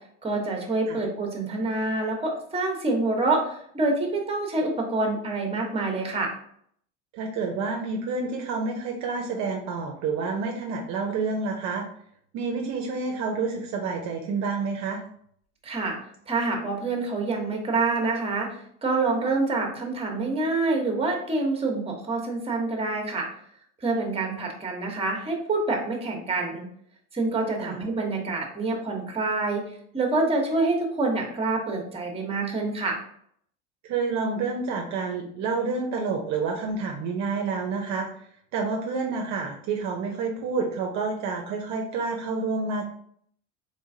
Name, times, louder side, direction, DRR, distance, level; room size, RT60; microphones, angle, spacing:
voice 1, 0.2-6.3 15.6-16.0 16.3-23.3 23.8-26.6 27.1-33.0, right 3 dB, 15° right, 2 dB, 1.1 m, -27 dB
voice 2, 7.1-11.9 12.3-15.0 27.6-27.8 33.8-38.1 38.5-42.9, right 4 dB, 50° right, 1 dB, 0.7 m, -29 dB
3.7 x 3.4 x 2.7 m, 0.65 s
supercardioid pair, 95°, 35 cm